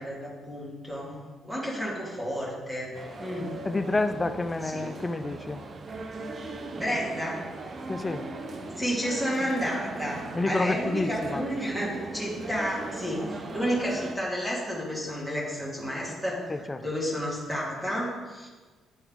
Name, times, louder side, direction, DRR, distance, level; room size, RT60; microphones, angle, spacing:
voice 1, 0.0-2.9 3.2-3.6 4.6-4.9 6.8-7.4 8.7-18.5, equal, 10° right, -5 dB, 2.0 m, -31 dB
sound 1, 2.9-14.2, right 2 dB, 45° right, 0.7 m, -38 dB
voice 2, 3.7-5.6 7.9-8.2 10.3-11.4 16.5-16.8, left 2 dB, 20° left, 10 dB, 0.4 m, -28 dB
10.0 x 3.5 x 3.6 m, 1.3 s
cardioid pair, 90°, 0 cm